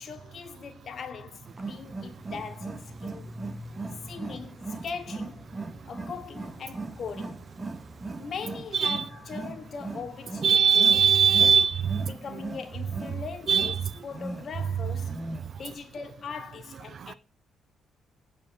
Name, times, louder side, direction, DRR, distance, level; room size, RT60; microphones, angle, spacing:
voice 1, 0.0-3.4 4.1-5.6 5.9-7.5 8.2-11.1 11.4-11.6 12.1-15.3 15.6-17.2, left 6 dB, 55° left, 2.1 m, -40 dB
Wild animals, 1.4-15.7, right 3 dB, 25° right, 1.8 m, -39 dB
voice 2, 10.4-12.1 13.5-13.7 16.9-17.1, right 6 dB, 55° right, 0.5 m, -21 dB
8.9 x 5.4 x 6.5 m
cardioid pair, 90°, 0 cm